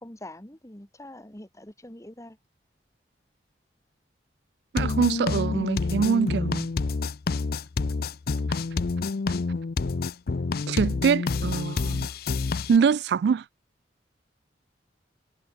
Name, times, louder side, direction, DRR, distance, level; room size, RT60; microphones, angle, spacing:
voice 1, 0.0-2.4, left 1 dB, 15° left, 2.0 m, -44 dB
voice 2, 4.7-6.7 10.7-12.1 12.7-13.4, right 6 dB, 65° right, 0.3 m, -24 dB
sound 1, 4.8-12.8, left 4 dB, 55° left, 0.5 m, -28 dB
head